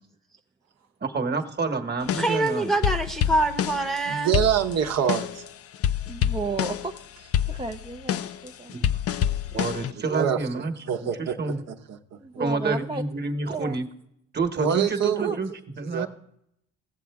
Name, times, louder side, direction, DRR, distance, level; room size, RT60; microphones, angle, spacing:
voice 1, 1.0-2.7 8.7-8.9 9.5-10.7 11.0-11.6 12.4-13.9 14.3-15.5 15.8-16.1, right 3 dB, 35° right, 6 dB, 1.2 m, -28 dB
sound 1, 2.0-4.0 4.3-5.5 5.7-7.0 7.3-9.9, left 10 dB, 50° left, 0.5 m, -27 dB
voice 2, 2.1-4.3, right 2 dB, ahead, 3 dB, 0.9 m, -25 dB
voice 3, 4.1-5.5 9.9-12.5 14.6-15.4 15.8-16.1, right 9 dB, 60° right, 5 dB, 0.8 m, -27 dB
voice 4, 6.1-8.7 12.2-13.0 13.5-13.8 15.2-15.4, right 4 dB, 15° right, 2 dB, 0.5 m, -33 dB
17.0 x 7.4 x 3.5 m, 0.77 s
cardioid pair, 90°, 30 cm